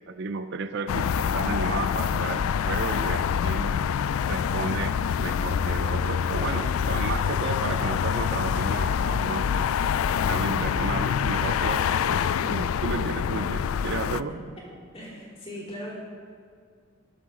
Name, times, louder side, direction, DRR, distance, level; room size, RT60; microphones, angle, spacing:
voice 1, 0.1-3.8 4.3-9.8 10.3-14.3, right 4 dB, 55° right, 9 dB, 0.5 m, -33 dB
sound 1, 0.9-14.2, left 7 dB, 85° left, 0.3 m, -26 dB
voice 2, 14.9-16.0, equal, 30° left, -5 dB, 3.7 m, -39 dB
20.5 x 8.1 x 3.8 m, 2.1 s
head